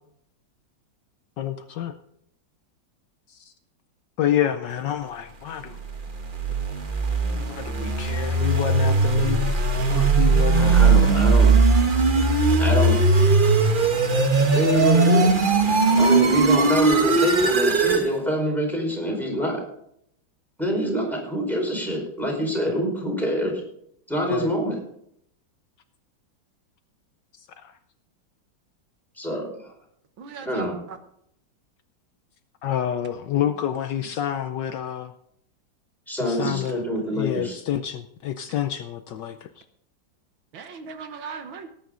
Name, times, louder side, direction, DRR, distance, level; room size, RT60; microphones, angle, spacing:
voice 1, 1.4-1.9 4.2-5.8 7.2-9.5 9.9-11.3 24.3-24.5 32.6-35.1 36.2-36.8 37.1-39.5, left 10 dB, 70° left, 9 dB, 1.3 m, -28 dB
sound 1, 5.9-18.1, right 3 dB, 30° right, 1.1 m, -19 dB
voice 2, 10.5-11.6 12.6-13.0 14.5-15.3 16.0-19.6 20.6-23.6 24.1-24.8 29.2-29.5 30.4-30.8 33.4-33.5 36.1-37.6, equal, ahead, -1 dB, 4.6 m, -26 dB
voice 3, 30.2-31.0 40.5-41.7, right 6 dB, 80° right, 8 dB, 2.0 m, -38 dB
18.5 x 9.3 x 3.8 m, 0.70 s
omnidirectional pair, 2.2 m